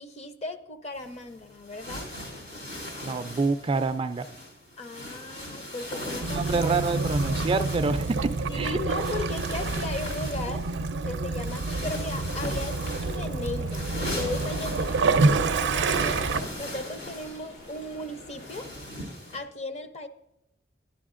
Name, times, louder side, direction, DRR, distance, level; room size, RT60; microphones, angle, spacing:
voice 1, 0.0-2.1 4.8-6.7 8.5-10.7 11.0-16.2 16.6-18.7 19.3-20.1, left 2 dB, 40° left, 9 dB, 0.6 m, -37 dB
sound 1, 0.9-19.4, left 1 dB, 70° left, 3.1 m, -39 dB
voice 2, 3.0-4.3 6.2-8.8, right 4 dB, 30° right, 9 dB, 0.3 m, -27 dB
Waves surf / Splash splatter / Trickle dribble, 6.2-16.4, right 3 dB, 90° right, 0.5 m, -28 dB
sound 2, 12.5-18.7, left 1 dB, 90° left, 4.1 m, -47 dB
11.5 x 10.5 x 2.5 m, 0.89 s
head